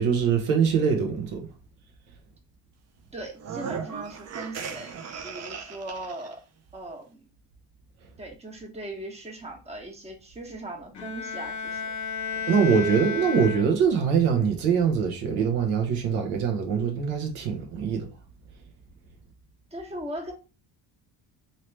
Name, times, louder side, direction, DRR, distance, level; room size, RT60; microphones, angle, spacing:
voice 1, 0.0-1.4 12.5-18.1, right 6 dB, 75° right, 1.0 m, -23 dB
voice 2, 3.1-4.9 5.2-6.4 6.7-7.3 8.2-11.9 19.7-20.3, right 1 dB, 15° right, 0.9 m, -39 dB
sound 1, 3.3-6.3, right 6 dB, 35° right, 0.5 m, -37 dB
Bowed string instrument, 10.9-14.1, left 6 dB, 35° left, 1.0 m, -33 dB
3.0 x 2.9 x 3.1 m
supercardioid pair, 70°, 49 cm